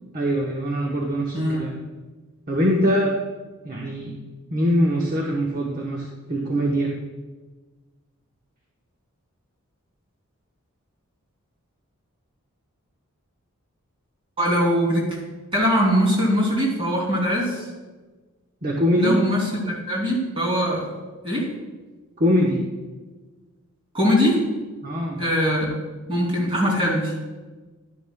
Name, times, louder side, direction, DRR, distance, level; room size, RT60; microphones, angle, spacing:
voice 1, 0.1-1.7 2.5-3.2 3.6-4.2 4.5-7.0 18.6-19.2 22.2-22.7 24.8-25.2, equal, 40° right, -1 dB, 1.0 m, -22 dB
voice 2, 14.4-15.2 15.5-17.7 19.0-20.9 21.2-21.5 23.9-24.5 25.2-25.7 26.1-27.2, equal, 25° right, -3 dB, 2.9 m, -22 dB
12.0 x 10.0 x 2.3 m, 1.3 s
head